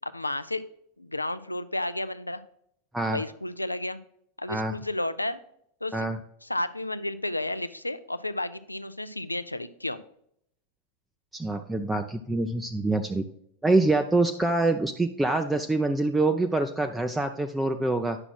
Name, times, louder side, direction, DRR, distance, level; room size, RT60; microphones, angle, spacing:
voice 1, 0.0-0.7 1.0-2.4 3.1-4.0 4.4-5.4 5.8-6.1 6.4-10.0, left 1 dB, 85° left, 13 dB, 0.4 m, -32 dB
voice 2, 11.3-13.2 13.6-18.2, right 2 dB, 10° right, 5 dB, 0.5 m, -25 dB
9.7 x 5.9 x 2.3 m, 0.70 s
figure-of-eight pair, 90°, 0 cm